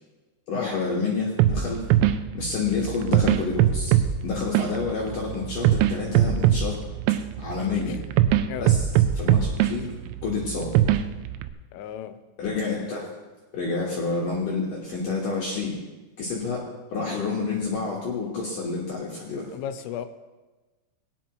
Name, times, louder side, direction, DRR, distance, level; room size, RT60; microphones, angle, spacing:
voice 1, 0.5-1.9 2.3-3.9 4.2-6.8 7.4-7.9 8.6-8.9 9.1-9.9 10.2-10.8 12.4-13.1 13.5-15.8 16.2-19.5, left 4 dB, 65° left, -4 dB, 2.1 m, -29 dB
sound 1, 1.4-11.5, right 11 dB, 90° right, 3.2 m, -23 dB
voice 2, 7.6-8.0 8.5-8.7 11.7-12.2 19.5-20.1, left 10 dB, 85° left, 10 dB, 3.2 m, -34 dB
19.0 x 10.5 x 3.1 m, 1.2 s
omnidirectional pair, 5.8 m